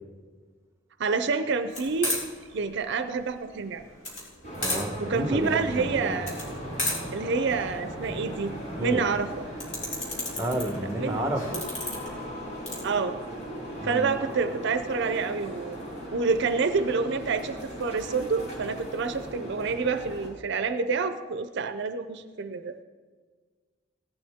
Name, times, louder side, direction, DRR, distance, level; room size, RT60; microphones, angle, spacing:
voice 1, 1.0-2.2 2.5-3.8 5.0-6.3 7.1-9.3 11.0-11.2 12.8-13.2 13.8-15.8 16.1-22.8, right 4 dB, 65° right, 10 dB, 0.5 m, -28 dB
sound 1, 1.7-12.8, left 1 dB, 40° left, 3.3 m, -36 dB
sound 2, 4.4-20.3, equal, 55° left, 4.4 m, -38 dB
voice 2, 4.6-6.2 8.1-8.2 8.7-9.0 10.4-11.6 13.8-14.1, right 1 dB, 15° right, 5 dB, 1.1 m, -31 dB
16.5 x 11.5 x 3.6 m, 1.5 s
head